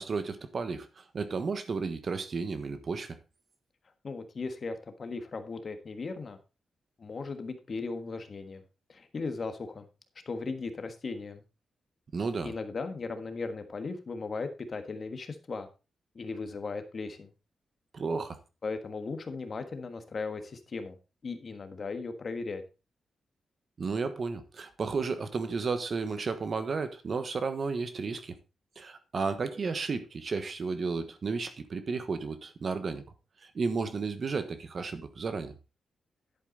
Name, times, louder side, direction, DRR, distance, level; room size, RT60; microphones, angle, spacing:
voice 1, 0.0-3.2 12.1-12.5 17.9-18.4 23.8-28.3 28.8-33.0 33.4-35.5, right 4 dB, 40° right, 10 dB, 1.3 m, -33 dB
voice 2, 4.0-6.4 7.0-8.6 8.9-9.9 10.2-11.4 12.4-15.7 16.1-17.3 18.6-21.0 21.2-22.6, left 4 dB, 40° left, 8 dB, 1.4 m, -37 dB
11.0 x 8.4 x 4.0 m, 0.29 s
wide cardioid pair, 150°, 0 cm